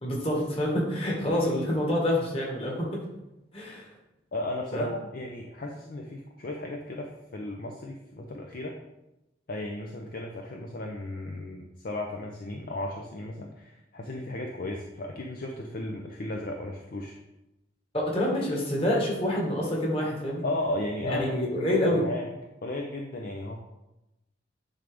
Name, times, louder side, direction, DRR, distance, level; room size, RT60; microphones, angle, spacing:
voice 1, 0.0-3.0 3.5-3.9 4.7-4.9 17.9-20.4 21.0-22.0, left 1 dB, 30° left, -2 dB, 1.8 m, -27 dB
voice 2, 4.3-8.8 9.5-17.1 20.4-21.7 21.9-22.3 22.6-23.6, left 1 dB, 50° left, 1 dB, 0.6 m, -35 dB
10.0 x 3.9 x 3.5 m, 0.94 s
head